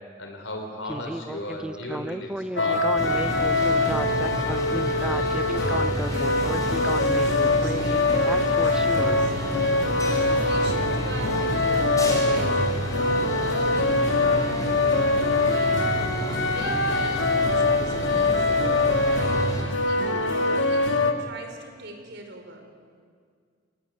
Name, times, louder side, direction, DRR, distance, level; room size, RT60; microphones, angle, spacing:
voice 1, 0.2-3.0 3.5-3.8 7.9-8.1, left 1 dB, 90° left, 3 dB, 4.6 m, -36 dB
Speech synthesizer, 0.8-9.2, right 1 dB, 5° right, 0.6 m, -33 dB
sound 1, 2.6-21.1, left 2 dB, 70° left, 2.1 m, -23 dB
sound 2, 3.0-19.6, equal, 20° left, 5.9 m, -31 dB
voice 2, 6.0-15.9 16.2-19.5 19.9-22.6, right 2 dB, 65° right, 4 dB, 5.6 m, -40 dB
29.5 x 20.0 x 9.7 m, 2.1 s
head